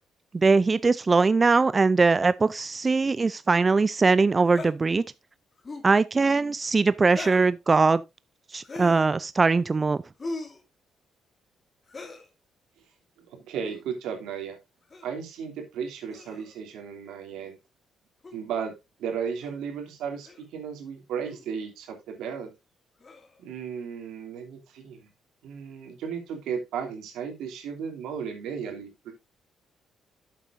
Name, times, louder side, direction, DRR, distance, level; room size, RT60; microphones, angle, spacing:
voice 1, 0.3-5.0 5.8-8.0 8.5-10.0, right 4 dB, 30° right, 0.4 m, -21 dB
sound 1, 4.5-4.7 5.6-5.9 7.1-7.5 8.6-9.1 10.2-10.6 11.9-12.3 13.6-13.8 14.9-15.1 16.1-16.6 18.2-18.4 19.4-19.5 20.2-20.5 21.3-21.4 23.0-23.4, left 2 dB, 35° left, 2.4 m, -39 dB
voice 2, 13.2-14.6 15.0-17.6 18.3-22.5 23.4-25.1 25.4-29.1, right 7 dB, 85° right, 2.8 m, -35 dB
11.5 x 7.6 x 2.6 m
cardioid pair, 85°, 0 cm